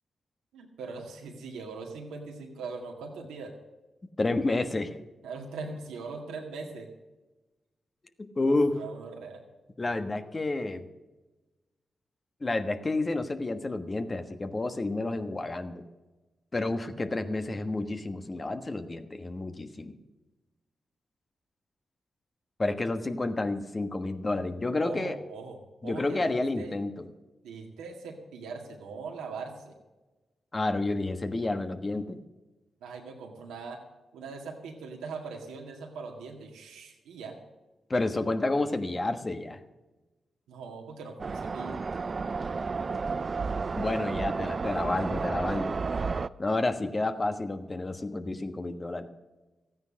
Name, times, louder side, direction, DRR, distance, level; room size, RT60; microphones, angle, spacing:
voice 1, 0.5-3.5 5.2-6.9 8.4-9.4 24.8-26.3 26.6-26.7 27.4-29.7 32.8-33.8 34.1-37.4 40.5-41.8, right 4 dB, 90° right, 1 dB, 2.0 m, -41 dB
voice 2, 4.2-5.0 8.2-8.8 9.8-10.8 12.4-15.8 16.5-19.9 22.6-25.2 25.8-27.1 30.5-32.2 37.9-39.6 43.7-45.8 46.4-49.1, left 2 dB, 35° left, 8 dB, 1.3 m, -30 dB
sound 1, 41.2-46.3, right 4 dB, 50° right, 0.4 m, -31 dB
14.0 x 9.5 x 6.4 m, 1.1 s
supercardioid pair, 45°, 0 cm